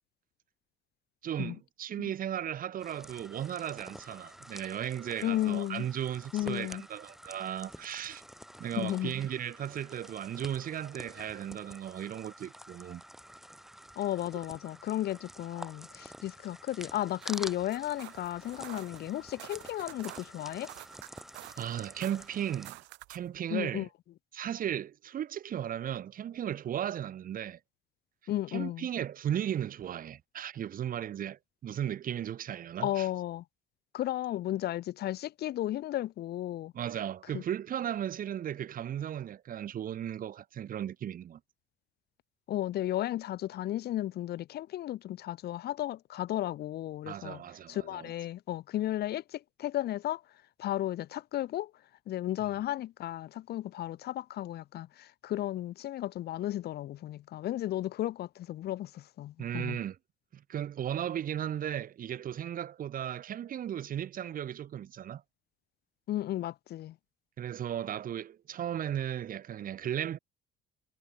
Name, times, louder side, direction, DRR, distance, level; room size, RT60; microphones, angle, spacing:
voice 1, 1.2-8.2 8.6-13.0 21.6-22.7 23.1-23.9 24.3-27.6 28.5-33.1 36.7-41.4 47.0-48.1 59.4-60.0 60.3-65.2 67.4-70.2, right 10 dB, 50° right, 2.5 m, -36 dB
sound 1, 2.8-22.7, equal, ahead, 5.4 m, -49 dB
voice 2, 5.2-5.9 6.3-6.8 8.7-9.1 14.0-20.7 23.5-23.9 28.3-28.9 32.8-33.4 33.9-36.7 37.3-37.4 42.5-47.4 47.7-49.2 49.6-50.2 50.6-51.7 52.1-59.8 66.1-66.9, left 13 dB, 60° left, 1.8 m, -34 dB
sound 2, 17.0-23.4, right 20 dB, 80° right, 2.9 m, -50 dB
cardioid pair, 105°, 18 cm